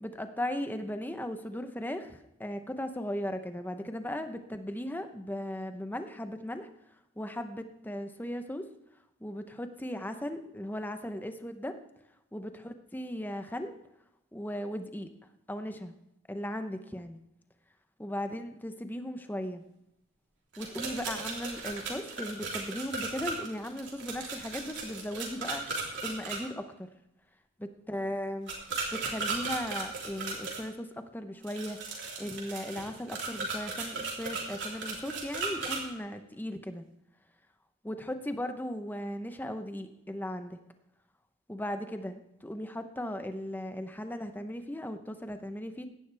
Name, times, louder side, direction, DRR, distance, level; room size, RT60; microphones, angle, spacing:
voice 1, 0.0-6.7 7.2-8.7 9.2-11.8 12.3-13.7 14.3-15.1 15.5-15.9 16.3-17.2 18.0-19.6 20.6-26.9 27.6-28.5 28.9-31.8 32.2-36.8 37.8-40.6 41.5-45.9, left 1 dB, 10° left, 8 dB, 0.8 m, -37 dB
sound 1, 20.5-26.4 28.5-30.6 31.4-35.8, right 4 dB, 60° right, 3.4 m, -36 dB
16.5 x 11.0 x 3.4 m, 0.84 s
head